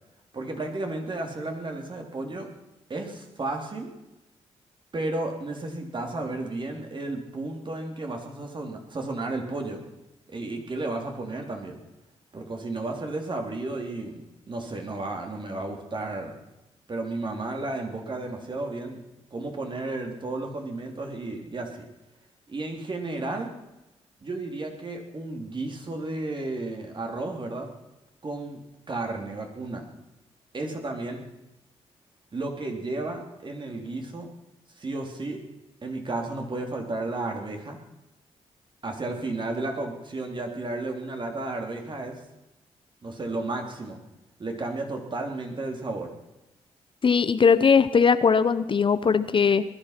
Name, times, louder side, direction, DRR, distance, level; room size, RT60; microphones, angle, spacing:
voice 1, 0.3-2.5 2.9-3.9 4.9-9.8 10.3-11.8 12.3-16.4 16.9-19.0 19.3-21.9 22.5-23.5 24.2-27.7 28.2-28.6 28.9-29.8 30.5-31.3 32.3-34.3 34.8-35.4 35.8-37.8 38.8-42.2 43.0-44.0 44.4-46.1, right 2 dB, 40° right, 3 dB, 3.4 m, -33 dB
voice 2, 47.0-49.6, left 6 dB, 45° left, 14 dB, 0.8 m, -20 dB
20.0 x 11.5 x 5.9 m, 0.96 s
cardioid pair, 65°, 12 cm